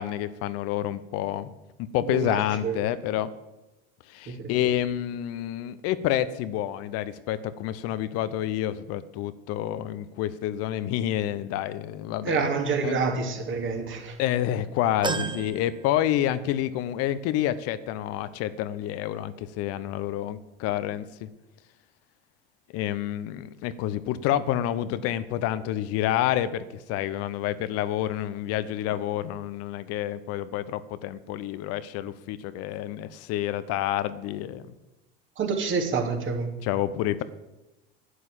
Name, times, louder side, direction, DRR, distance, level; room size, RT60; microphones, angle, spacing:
voice 1, 0.0-1.5 1.9-3.3 4.1-12.5 12.8-13.0 14.2-21.0 22.7-34.6 36.6-37.2, left 12 dB, 55° left, 14 dB, 0.8 m, -28 dB
voice 2, 2.1-2.9 4.3-4.7 12.2-14.2 15.1-15.3 35.4-36.5, right 5 dB, 45° right, 4 dB, 2.6 m, -28 dB
sound 1, 15.0-16.7 17.1-17.2 18.4-18.5, right 4 dB, 15° right, 1.0 m, -35 dB
11.5 x 8.1 x 7.8 m, 1.0 s
hypercardioid pair, 70°, 29 cm